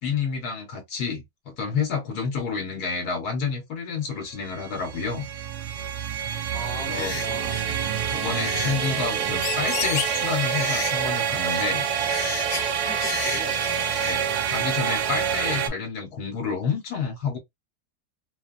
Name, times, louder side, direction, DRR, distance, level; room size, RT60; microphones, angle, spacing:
voice 1, 0.0-5.3 6.7-7.1 8.1-11.9 14.0-17.4, left 5 dB, 65° left, 1.5 m, -29 dB
sound 1, 4.3-15.7, right 8 dB, 75° right, 1.0 m, -27 dB
voice 2, 6.5-7.7 12.5-13.6, left 1 dB, 5° left, 0.7 m, -39 dB
sound 2, 6.9-14.1, left 8 dB, 90° left, 1.2 m, -34 dB
3.0 x 2.2 x 2.4 m
omnidirectional pair, 1.9 m